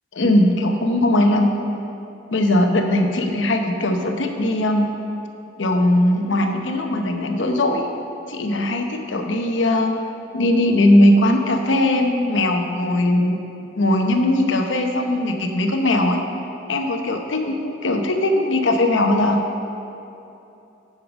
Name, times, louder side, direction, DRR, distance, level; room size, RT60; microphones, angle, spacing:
voice 1, 0.1-1.5 2.3-4.9 5.6-7.9 8.3-10.0 10.3-13.4 13.8-16.2 16.7-19.4, left 1 dB, 80° left, 4 dB, 0.9 m, -19 dB
9.5 x 6.6 x 5.1 m, 2.8 s
head